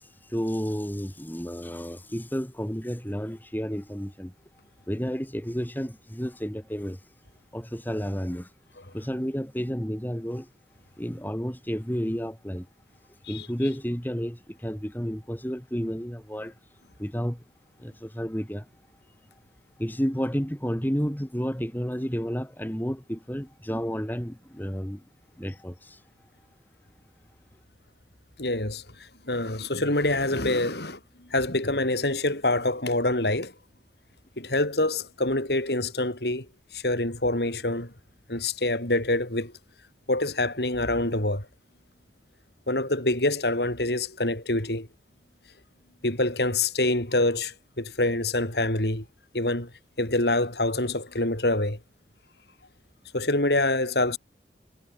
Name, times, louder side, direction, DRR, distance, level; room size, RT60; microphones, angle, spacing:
voice 1, 0.3-4.3 4.9-7.0 7.5-8.5 8.9-10.5 11.0-12.7 13.3-16.5 17.0-17.4 17.8-18.7 19.8-25.0 25.4-26.0, equal, 10° left, 3.5 m, -31 dB
voice 2, 28.4-28.8 29.3-31.0 31.3-33.5 34.4-36.5 36.7-37.9 38.3-39.5 40.1-41.5 42.7-44.9 46.0-49.0 49.3-49.7 50.0-51.8 53.1-54.2, left 2 dB, 70° left, 5.6 m, -26 dB
head